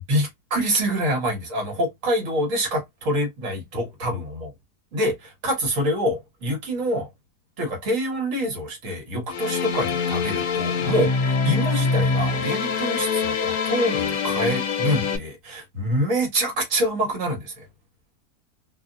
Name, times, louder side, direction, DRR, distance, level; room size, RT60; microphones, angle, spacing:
voice 1, 0.1-4.5 4.9-7.1 7.6-17.7, equal, 55° right, 1.6 m, -26 dB
sound 1, 9.3-15.2, left 5 dB, 70° left, 1.1 m, -24 dB
3.0 x 2.4 x 2.5 m
omnidirectional pair, 1.7 m